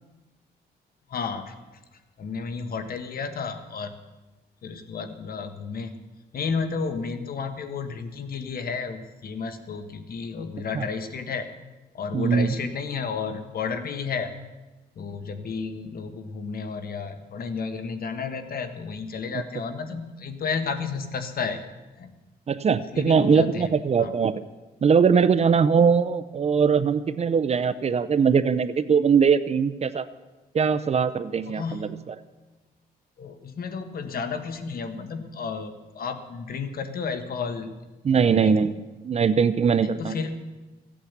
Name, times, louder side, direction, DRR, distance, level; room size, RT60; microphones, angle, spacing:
voice 1, 1.1-1.5 2.2-4.0 4.6-5.9 6.3-11.5 11.9-14.3 15.0-21.6 22.0-22.1 22.8-23.7 24.0-24.1 31.5-32.0 33.2-37.7 38.1-38.6 39.8-40.4, left 5 dB, 60° left, 9 dB, 1.4 m, -32 dB
voice 2, 12.1-12.5 22.5-24.3 24.8-30.0 30.5-32.1 38.0-38.8 39.0-40.2, right 6 dB, 40° right, 14 dB, 0.6 m, -21 dB
15.0 x 8.6 x 8.1 m, 1.2 s
cardioid pair, 115°, 17 cm